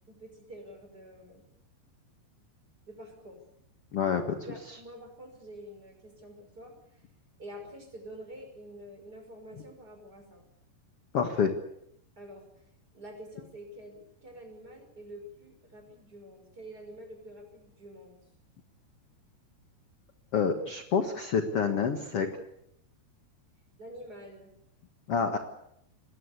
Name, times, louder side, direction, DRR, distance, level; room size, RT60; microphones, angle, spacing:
voice 1, 0.1-1.4 2.9-3.5 4.5-7.0 7.4-10.5 12.2-12.5 12.9-18.2 23.8-24.5, equal, 20° right, 5 dB, 5.8 m, -47 dB
voice 2, 3.9-4.2 11.1-11.5 20.3-22.3 25.1-25.4, left 6 dB, 55° left, 6 dB, 1.7 m, -27 dB
26.0 x 20.0 x 8.3 m, 0.75 s
omnidirectional pair, 5.0 m